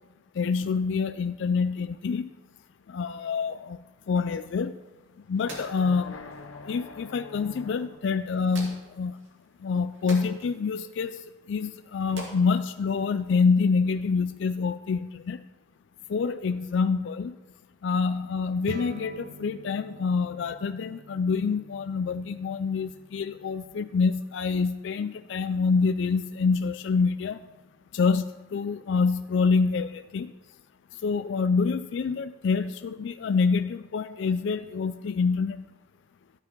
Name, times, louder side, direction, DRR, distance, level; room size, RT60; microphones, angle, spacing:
voice 1, 0.4-2.3 2.9-4.8 5.3-6.1 6.7-9.2 9.6-15.4 16.1-17.3 17.8-27.4 27.9-30.3 31.0-35.6, left 5 dB, 65° left, 11 dB, 0.3 m, -26 dB
sound 1, 4.6-13.6, right 2 dB, 70° right, 2.5 m, -48 dB
sound 2, 5.4-8.3, left 3 dB, 80° left, 0.7 m, -44 dB
sound 3, 18.6-28.1, right 2 dB, 45° right, 0.5 m, -48 dB
12.0 x 9.9 x 4.5 m, 1.1 s
head